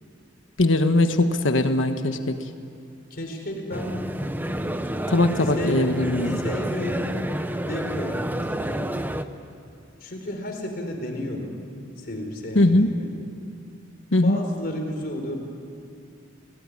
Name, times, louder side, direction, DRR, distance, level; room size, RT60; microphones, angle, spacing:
voice 1, 0.6-2.4 5.1-6.4 12.5-12.9 14.1-14.4, left 2 dB, 85° left, 7 dB, 1.3 m, -20 dB
voice 2, 3.1-4.1 4.4-4.8 5.6-5.9 6.4-7.2 7.5-8.2 8.5-8.9 10.0-11.5 12.0-13.1 14.2-15.4, left 1 dB, 50° left, 3 dB, 4.2 m, -32 dB
sound 1, 3.7-9.2, right 1 dB, 10° right, 0.8 m, -29 dB
30.0 x 18.0 x 9.9 m, 2.5 s
head